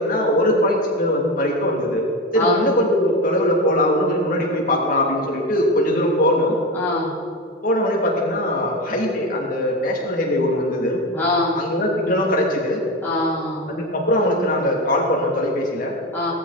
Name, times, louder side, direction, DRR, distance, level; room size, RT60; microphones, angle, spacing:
voice 1, 0.0-2.0 2.3-6.5 7.6-11.0 11.5-12.8 13.7-16.0, left 1 dB, 50° left, -2 dB, 2.9 m, -21 dB
voice 2, 6.7-7.1 11.1-11.6 13.0-13.7 16.1-16.3, left 2 dB, 10° left, -9 dB, 4.9 m, -23 dB
18.5 x 13.5 x 4.3 m, 2.3 s
head